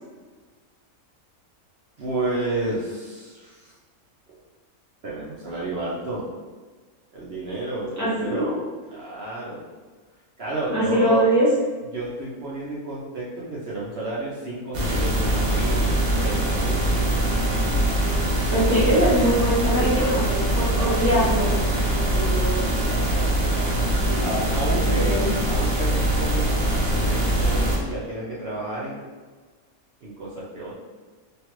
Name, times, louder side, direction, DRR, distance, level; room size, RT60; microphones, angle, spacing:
voice 1, 2.0-3.7 5.0-6.3 7.1-9.7 10.4-11.3 11.9-15.9 16.2-17.2 19.8-20.2 20.7-21.0 21.4-21.8 22.8-23.8 24.2-25.2 25.4-26.6 27.1-29.0 30.0-30.7, right 2 dB, 60° right, -6 dB, 0.7 m, -31 dB
voice 2, 8.0-8.5 10.7-11.5 18.5-22.6 24.0-24.4 24.8-25.3, equal, 15° right, -8 dB, 0.6 m, -23 dB
sound 1, 14.7-27.8, right 1 dB, 80° right, 0.4 m, -23 dB
3.2 x 2.3 x 2.9 m, 1.4 s
omnidirectional pair, 1.5 m